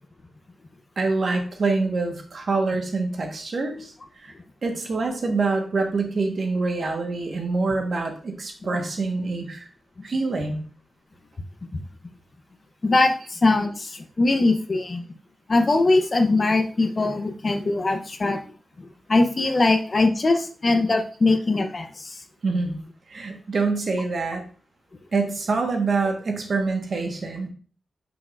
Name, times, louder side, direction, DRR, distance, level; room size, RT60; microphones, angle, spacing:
voice 1, 1.0-3.9 4.2-4.3 4.6-9.7 10.0-10.6 22.4-22.8 23.1-24.4 25.1-27.5, right 3 dB, 55° right, 3 dB, 1.3 m, -25 dB
voice 2, 12.8-15.0 15.5-18.4 18.8-22.1, left 2 dB, 35° left, 5 dB, 0.7 m, -21 dB
7.2 x 6.1 x 2.5 m, 0.42 s
wide cardioid pair, 155°, 0 cm